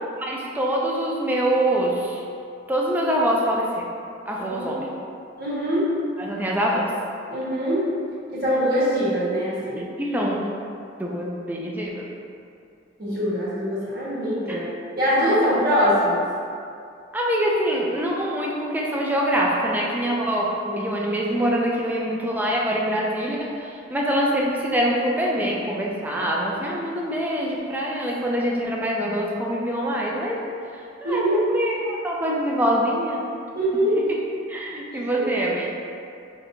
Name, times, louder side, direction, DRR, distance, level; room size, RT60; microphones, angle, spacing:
voice 1, 0.2-2.2 2.7-3.9 4.3-4.9 6.2-6.9 10.0-10.5 11.0-12.1 14.5-14.6 17.1-20.5 20.8-30.5 30.7-33.2 34.1-34.2 34.5-35.7, equal, 10° right, -3 dB, 0.4 m, -24 dB
voice 2, 4.4-4.7 5.4-5.9 7.3-7.9 8.3-9.9 13.0-14.6 15.0-16.2 20.6-20.8 31.0-31.5 33.5-34.0 34.9-35.2, equal, 55° right, -10 dB, 1.4 m, -23 dB
5.0 x 2.8 x 2.6 m, 2.5 s
head